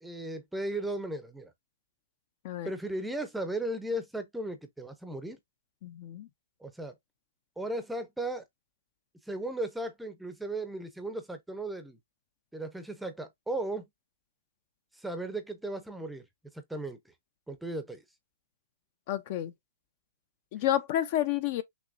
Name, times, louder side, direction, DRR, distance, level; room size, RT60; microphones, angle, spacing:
voice 1, 0.0-1.5 2.6-5.4 6.6-6.9 7.6-8.4 9.3-12.0 12.5-13.9 14.9-16.3 16.5-17.0 17.5-18.0, right 1 dB, ahead, 0.6 m, -36 dB
voice 2, 5.8-6.3 19.1-19.5 20.5-21.6, left 12 dB, 40° left, 0.5 m, -30 dB
6.1 x 2.9 x 2.5 m
hypercardioid pair, 165°, 0 cm